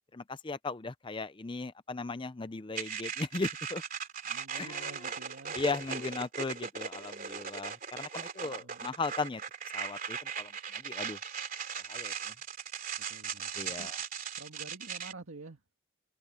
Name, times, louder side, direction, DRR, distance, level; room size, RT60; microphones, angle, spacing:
voice 1, 0.1-3.8 4.5-5.2 5.5-9.4 9.7-11.2 11.9-12.3 13.6-14.0, left 3 dB, 25° left, 0.5 m, -37 dB
sound 1, 2.7-15.1, right 7 dB, 40° right, 3.0 m, -38 dB
voice 2, 4.3-5.6 8.4-8.9 13.0-13.9 14.4-15.6, right 3 dB, 80° right, 1.9 m, -49 dB
head